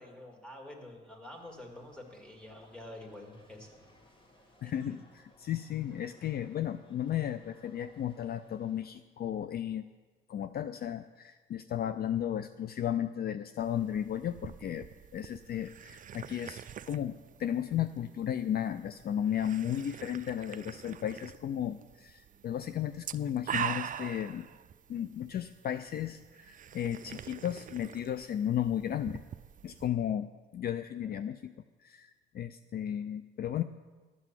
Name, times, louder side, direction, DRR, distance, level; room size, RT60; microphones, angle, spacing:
voice 1, 0.0-3.7 4.6-5.0 31.0-31.2, left 1 dB, 5° left, 2 dB, 2.2 m, -48 dB
sound 1, 1.3-8.9, left 1 dB, 25° left, 1.6 m, -63 dB
voice 2, 4.6-9.8 10.3-14.9 15.1-24.5 24.9-29.2 29.6-31.5 31.8-33.6, left 10 dB, 50° left, 12 dB, 0.4 m, -34 dB
sound 2, 13.6-29.9, right 9 dB, 45° right, 0.4 m, -44 dB
12.0 x 6.0 x 7.5 m, 1.3 s
cardioid pair, 90°, 20 cm